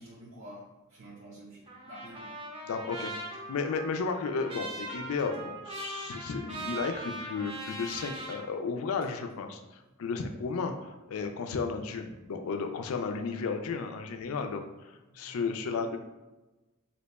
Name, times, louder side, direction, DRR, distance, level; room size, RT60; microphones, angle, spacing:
voice 1, 0.0-2.3 6.0-6.3 9.9-10.0 11.8-11.9 15.1-15.7, right 1 dB, 65° right, -6 dB, 0.6 m, -49 dB
Trumpet, 1.7-8.4, right 2 dB, 25° right, 0.6 m, -41 dB
voice 2, 2.7-3.1 3.5-9.6 10.0-16.0, left 4 dB, 85° left, 6 dB, 0.4 m, -33 dB
2.8 x 2.2 x 4.0 m, 1.1 s
head